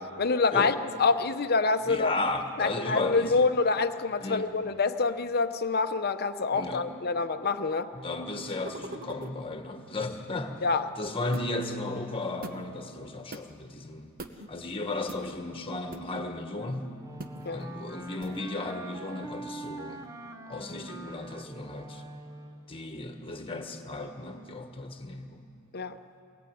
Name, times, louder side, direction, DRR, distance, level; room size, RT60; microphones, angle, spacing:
voice 1, 0.2-2.1 2.6-7.9 10.6-10.8 17.4-17.7 25.7-26.0, left 4 dB, 45° left, 8 dB, 0.8 m, -26 dB
voice 2, 1.8-3.5 4.2-4.5 6.5-6.9 7.9-10.5 11.0-14.1 14.5-16.9 17.5-20.1 20.5-22.0 22.7-25.4, left 2 dB, 25° left, 5 dB, 1.6 m, -35 dB
sound 1, 8.6-9.4 11.3-11.6 12.4-12.6 13.3-13.4 14.2-14.5 15.1-15.2 15.9-16.2 17.2-17.5 18.2-18.4, right 2 dB, 40° right, 1.0 m, -41 dB
Wind instrument woodwind instrument, 17.0-22.7, right 1 dB, 15° right, 0.8 m, -43 dB
22.5 x 18.5 x 9.3 m, 2.5 s
head